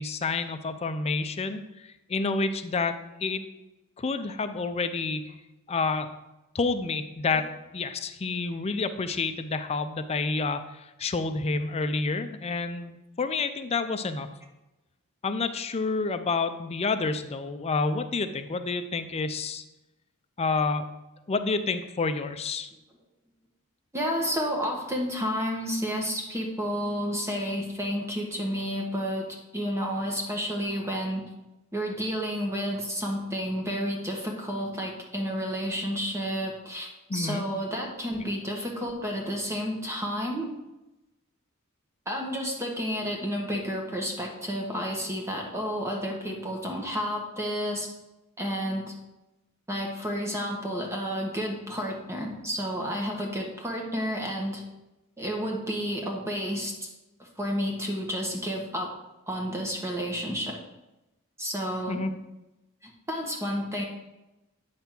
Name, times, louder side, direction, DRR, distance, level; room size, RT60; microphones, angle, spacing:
voice 1, 0.0-2.9 3.2-3.4 4.0-5.3 5.7-6.1 6.5-14.3 15.2-19.6 20.4-20.9 21.3-22.7 37.1-37.5 61.9-62.1, left 4 dB, 30° left, 9 dB, 0.4 m, -29 dB
voice 2, 23.9-31.2 31.7-40.5 42.1-47.9 48.4-48.9 49.7-54.6 55.2-56.9 57.2-58.9 59.3-60.6 61.4-62.0 62.8-63.8, equal, 10° right, 0 dB, 1.0 m, -31 dB
8.9 x 3.4 x 5.9 m, 0.98 s
head